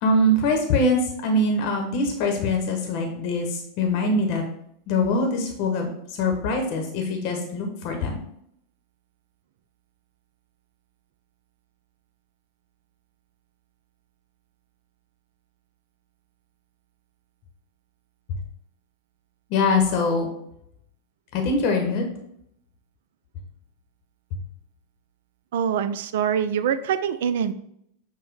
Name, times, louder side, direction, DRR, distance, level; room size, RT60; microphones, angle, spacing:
voice 1, 0.0-4.4 4.9-5.9 6.2-8.2 19.5-20.3 21.3-22.0, left 2 dB, 55° left, 3 dB, 0.8 m, -23 dB
voice 2, 25.5-27.5, right 8 dB, 70° right, 13 dB, 0.3 m, -24 dB
6.0 x 2.2 x 3.2 m, 0.72 s
hypercardioid pair, 105°, 0 cm